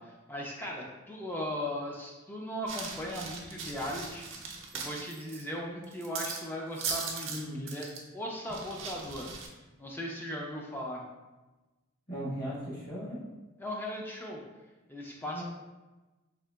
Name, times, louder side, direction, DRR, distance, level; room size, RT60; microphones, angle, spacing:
voice 1, 0.0-4.3 4.7-7.3 7.6-7.9 8.1-9.3 9.8-11.0 13.6-14.4 14.9-15.4, equal, 10° left, -2 dB, 0.3 m, -38 dB
sound 1, 2.7-5.4 5.8-6.4 6.7-7.4 7.7-8.0 8.5-9.5, right 5 dB, 75° right, 0.5 m, -39 dB
voice 2, 7.3-7.6 12.1-13.2 15.3-15.4, equal, 45° left, -8 dB, 1.0 m, -37 dB
3.7 x 2.8 x 2.2 m, 1.1 s
head